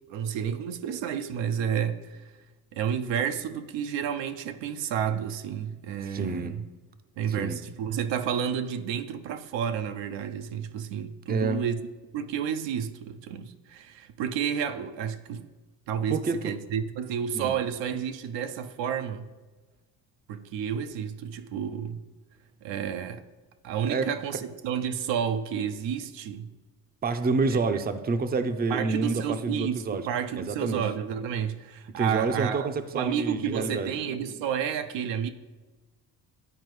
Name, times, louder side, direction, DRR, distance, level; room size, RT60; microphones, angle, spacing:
voice 1, 0.1-2.3 2.7-6.6 7.2-11.8 12.1-15.5 15.9-19.3 20.3-22.0 22.6-23.2 23.6-26.5 27.5-27.6 28.7-35.3, right 8 dB, 75° right, 0.6 m, -31 dB
voice 2, 6.0-6.6 7.4-7.6 11.3-11.6 16.1-16.6 17.3-17.6 23.9-24.1 27.0-30.0 30.4-30.8 32.0-33.9, right 4 dB, 20° right, 0.5 m, -28 dB
11.0 x 4.3 x 3.1 m
hypercardioid pair, 55°, 46 cm